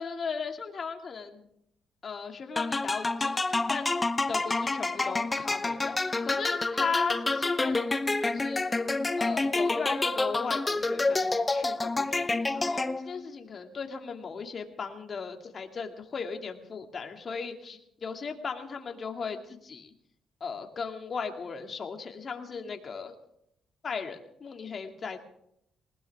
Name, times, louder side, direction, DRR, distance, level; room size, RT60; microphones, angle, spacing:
voice 1, 0.0-1.5 2.0-4.0 4.3-8.6 9.2-19.9 20.4-23.1 23.8-25.2, left 5 dB, 45° left, 4 dB, 2.4 m, -37 dB
sound 1, 2.6-13.2, left 3 dB, 20° left, 0.9 m, -28 dB
20.0 x 20.0 x 3.6 m, 0.74 s
cardioid pair, 90°, 0 cm